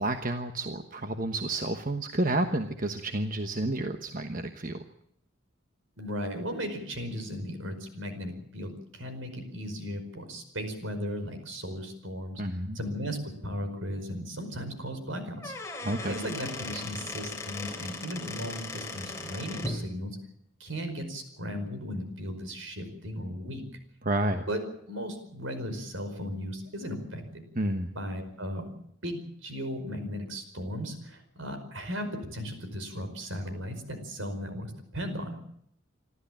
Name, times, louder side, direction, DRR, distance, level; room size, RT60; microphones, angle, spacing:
voice 1, 0.0-4.8 12.4-12.8 15.8-16.2 24.0-24.4 27.6-27.9, right 1 dB, 40° right, 7 dB, 1.2 m, -30 dB
voice 2, 6.0-12.4 12.7-13.2 13.4-15.5 16.1-20.2 20.6-23.7 24.5-24.6 24.9-27.4 27.9-28.7 29.0-35.4, equal, 75° right, 8 dB, 5.1 m, -36 dB
Squeak / Wood, 15.2-19.8, left 2 dB, 15° left, 3.4 m, -38 dB
27.5 x 13.0 x 8.9 m, 0.71 s
head